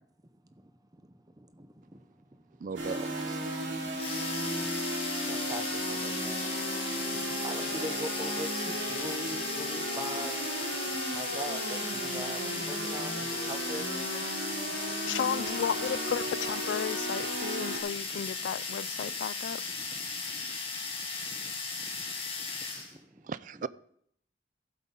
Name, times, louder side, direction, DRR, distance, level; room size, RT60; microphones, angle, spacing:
voice 1, 2.6-3.1 23.2-23.7, right 5 dB, 45° right, 0.3 m, -36 dB
sound 1, 2.8-17.8, right 1 dB, 85° right, 2.6 m, -35 dB
sound 2, 4.0-22.9, left 4 dB, 30° left, 1.7 m, -37 dB
voice 2, 5.3-6.1 6.4-6.5 7.4-10.3 11.1-13.8 16.7-16.8 17.2-17.3 18.1-18.2, right 1 dB, 20° right, 0.8 m, -40 dB
voice 3, 15.1-19.6, left 8 dB, 70° left, 0.3 m, -33 dB
14.5 x 8.2 x 3.7 m
head